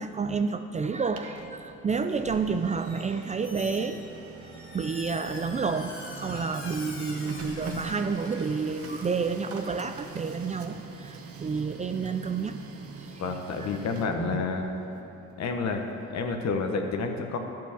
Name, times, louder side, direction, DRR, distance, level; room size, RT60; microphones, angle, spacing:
voice 1, 0.0-4.0 4.7-12.5 13.6-13.7 14.2-14.5, right 5 dB, 25° right, 8 dB, 0.3 m, -30 dB
Printer, 0.9-16.6, right 4 dB, 50° right, 0.9 m, -44 dB
Squeak, 2.8-3.1 3.4-9.1, left 2 dB, 45° left, 1.4 m, -45 dB
voice 2, 13.2-14.7 15.4-15.8 16.1-17.4, left 4 dB, 60° left, 5 dB, 1.0 m, -29 dB
10.5 x 4.5 x 7.2 m, 2.9 s
cardioid pair, 90°, 30 cm